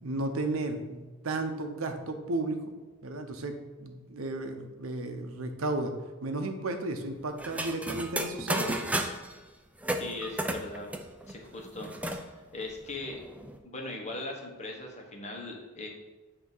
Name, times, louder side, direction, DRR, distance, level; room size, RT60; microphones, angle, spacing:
voice 1, 0.0-2.6 3.0-5.9 6.2-8.7, right 2 dB, 70° right, 6 dB, 0.7 m, -33 dB
sound 1, 7.4-9.3 9.8-12.2 12.6-12.7 12.9-13.6, right 1 dB, 5° right, 0.4 m, -33 dB
voice 2, 9.9-10.9 11.3-13.2 13.6-15.9, left 2 dB, 35° left, 0 dB, 1.1 m, -40 dB
8.5 x 2.9 x 5.4 m, 1.2 s
head